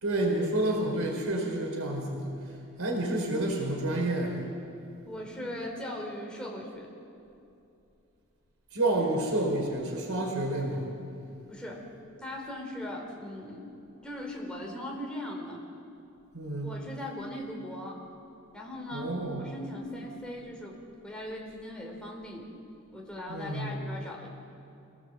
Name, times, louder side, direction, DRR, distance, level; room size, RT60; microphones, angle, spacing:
voice 1, 0.0-2.4 2.8-4.5 8.7-10.9 16.3-16.7 18.9-19.4 23.3-23.8, right 1 dB, 75° right, 1 dB, 4.1 m, -29 dB
voice 2, 5.0-6.9 11.5-11.8 12.2-13.6 14.0-15.6 16.6-18.0 18.5-19.1 19.4-20.8 21.0-22.5 22.9-24.3, left 1 dB, 5° left, -2 dB, 4.4 m, -39 dB
26.5 x 17.5 x 7.7 m, 2.8 s
head